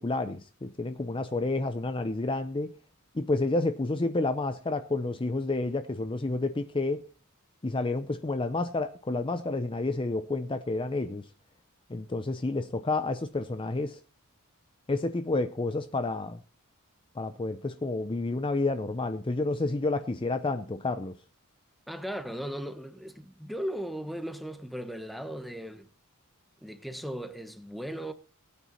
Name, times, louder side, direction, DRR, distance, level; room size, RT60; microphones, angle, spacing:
voice 1, 0.0-2.7 3.1-7.0 7.6-11.3 11.9-14.0 14.9-16.4 17.2-21.2, left 2 dB, 25° left, 0.6 m, -30 dB
voice 2, 21.9-25.9 26.6-28.1, equal, ahead, 1.1 m, -37 dB
18.5 x 9.3 x 4.1 m
head